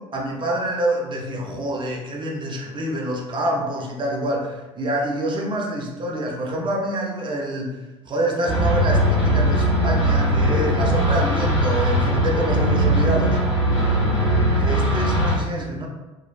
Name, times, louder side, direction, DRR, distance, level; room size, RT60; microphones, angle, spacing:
voice 1, 0.0-7.8 8.1-13.4 14.6-15.9, right 1 dB, 30° right, 0 dB, 0.7 m, -26 dB
sound 1, 8.5-15.4, right 1 dB, 75° left, 1.4 m, -20 dB
3.0 x 2.4 x 2.6 m, 1.1 s
figure-of-eight pair, 60°, 16 cm